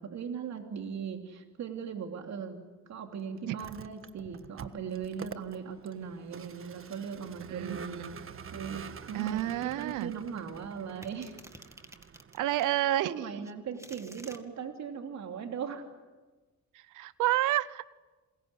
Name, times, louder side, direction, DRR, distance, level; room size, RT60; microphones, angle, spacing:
voice 1, 0.0-2.6 2.9-8.1 8.5-11.3 13.0-15.8, right 7 dB, 65° right, 4 dB, 3.1 m, -39 dB
Vehicle, 3.4-12.8, right 6 dB, 45° right, 1.5 m, -47 dB
voice 2, 7.5-8.1 9.1-10.1 12.4-13.3 16.7-17.9, right 14 dB, 85° right, 18 dB, 0.8 m, -30 dB
sound 1, 11.0-12.8 13.4-14.4, right 1 dB, 10° right, 2.3 m, -51 dB
27.5 x 22.0 x 9.9 m, 1.2 s
cardioid pair, 90°, 30 cm